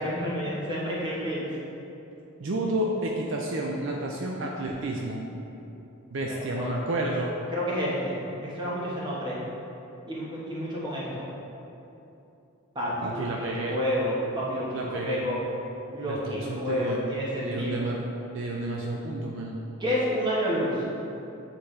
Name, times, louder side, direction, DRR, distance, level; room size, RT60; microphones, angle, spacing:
voice 1, 0.0-1.5 6.5-6.8 7.5-9.4 10.1-11.3 12.7-15.4 15.9-17.9 19.8-20.8, equal, 20° right, -6 dB, 1.1 m, -30 dB
voice 2, 2.4-5.2 6.1-7.3 13.0-13.8 14.7-15.3 16.1-17.0 17.4-18.0 18.3-19.6, right 1 dB, 60° right, -1 dB, 0.4 m, -30 dB
7.9 x 4.2 x 3.2 m, 2.9 s
head